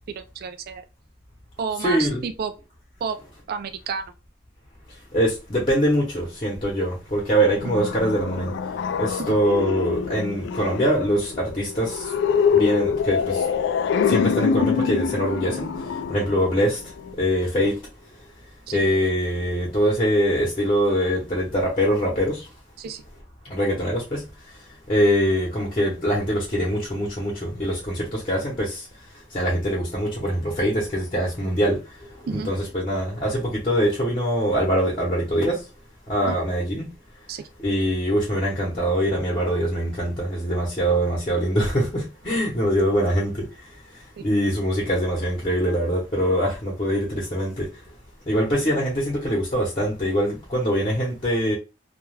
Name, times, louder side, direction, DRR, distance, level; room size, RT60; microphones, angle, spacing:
voice 1, 0.2-0.9 1.6-2.5 3.0-3.2 3.5-4.1 7.8-7.9 9.2-9.4 18.7-18.8 22.8-23.0 32.3-32.5 36.3-36.4 37.3-37.5 44.2-44.3, right 6 dB, 55° right, 0.3 m, -30 dB
voice 2, 1.8-2.2 5.1-8.5 9.0-12.1 12.5-13.4 14.1-15.7 16.1-16.8 17.2-17.8 18.7-22.5 23.4-24.3 24.9-28.8 29.3-31.8 32.3-35.6 36.1-36.9 37.6-43.5 44.2-47.7 48.3-51.5, equal, 30° left, 0.8 m, -23 dB
sound 1, 7.4-17.1, left 6 dB, 65° left, 0.3 m, -25 dB
2.3 x 2.2 x 3.2 m
head